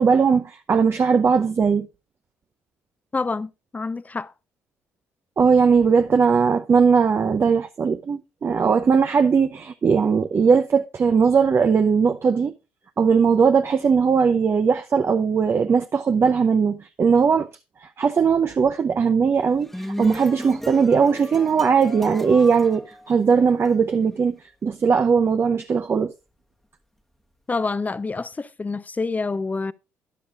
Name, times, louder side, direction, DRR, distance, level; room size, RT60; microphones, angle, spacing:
voice 1, 0.0-1.9 5.4-12.5 13.0-17.5 17.8-26.1, right 6 dB, 40° right, 0.8 m, -19 dB
voice 2, 3.1-4.3 27.5-29.7, left 3 dB, 25° left, 0.8 m, -27 dB
sound 1, 19.4-23.7, equal, 5° left, 1.3 m, -35 dB
13.5 x 10.0 x 2.4 m
hypercardioid pair, 50°, 7 cm